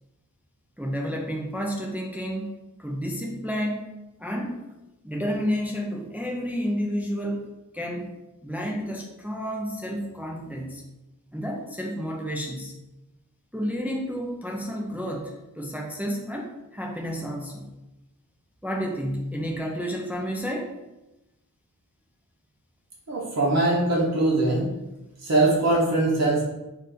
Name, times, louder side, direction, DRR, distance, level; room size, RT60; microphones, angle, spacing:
voice 1, 0.8-2.5 2.8-3.9 4.2-4.6 5.0-7.5 7.7-8.2 8.4-10.8 11.3-12.7 13.5-17.7 18.6-20.7, equal, 5° right, 0 dB, 0.5 m, -30 dB
voice 2, 23.1-24.7 25.2-26.4, right 2 dB, 45° right, -4 dB, 1.0 m, -22 dB
4.0 x 2.6 x 3.9 m, 0.98 s
wide cardioid pair, 80°, 36 cm